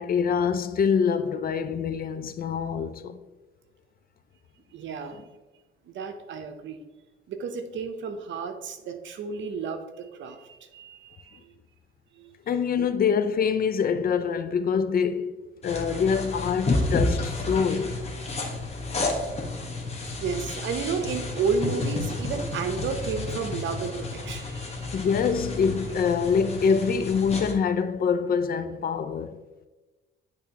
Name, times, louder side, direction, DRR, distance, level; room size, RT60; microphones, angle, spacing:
voice 1, 0.0-3.2 12.5-15.4 15.6-18.0 24.9-29.4, left 6 dB, 50° left, 0.5 m, -25 dB
voice 2, 4.7-5.2 5.8-6.8 7.3-11.5 12.1-12.3 20.2-24.9, right 5 dB, 70° right, 0.8 m, -32 dB
sound 1, 15.6-27.5, left 2 dB, 30° left, 1.3 m, -31 dB
10.0 x 3.5 x 2.9 m
cardioid pair, 90°, 20 cm